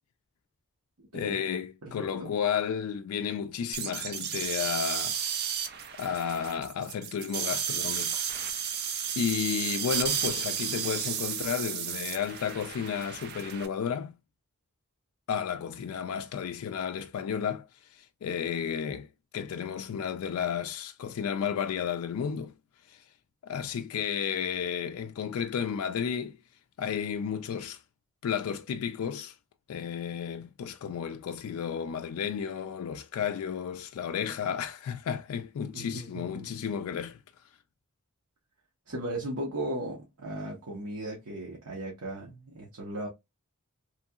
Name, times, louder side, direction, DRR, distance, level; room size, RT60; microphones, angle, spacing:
voice 1, 1.1-5.2 6.0-8.3 9.2-14.2 15.3-19.1 19.3-22.5 22.9-23.0 23.4-26.4 26.8-27.8 28.2-29.4 29.7-37.2, left 7 dB, 75° left, 0.3 m, -32 dB
voice 2, 1.8-2.3 35.7-36.5 38.9-43.1, right 1 dB, 80° right, 0.9 m, -37 dB
sound 1, 3.7-13.7, right 8 dB, 45° right, 0.5 m, -33 dB
3.0 x 2.7 x 2.3 m
head